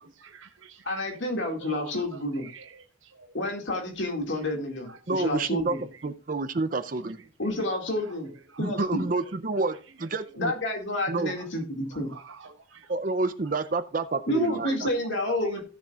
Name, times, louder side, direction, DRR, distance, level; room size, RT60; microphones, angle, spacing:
voice 1, 0.2-1.2 1.4-2.0 2.4-3.4 4.9-5.0 7.0-7.1 8.5-8.8 11.4-11.5 11.9-12.9 14.8-14.9 15.2-15.6, right 4 dB, 75° right, 1.1 m, -48 dB
voice 2, 0.9-2.5 3.3-5.8 7.4-8.3 8.6-9.0 10.4-12.1 14.3-15.6, left 1 dB, 65° left, 2.2 m, -29 dB
voice 3, 5.1-5.8 6.0-7.2 8.6-10.5 11.1-11.4 12.9-14.9, right 3 dB, 40° right, 0.5 m, -29 dB
16.0 x 7.1 x 2.4 m
head